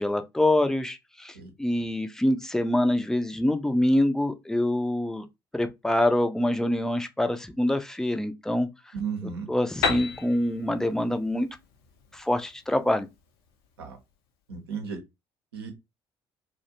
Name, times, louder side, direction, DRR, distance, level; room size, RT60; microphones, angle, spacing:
voice 1, 0.0-5.3 5.5-8.7 9.5-11.5 12.1-13.1, left 1 dB, 5° left, 0.4 m, -25 dB
voice 2, 8.9-9.5 13.8-14.0 14.5-15.0 15.5-15.7, right 6 dB, 80° right, 0.7 m, -34 dB
Piano, 9.8-13.5, left 5 dB, 75° left, 0.5 m, -33 dB
2.4 x 2.1 x 2.8 m
figure-of-eight pair, 55°, 13 cm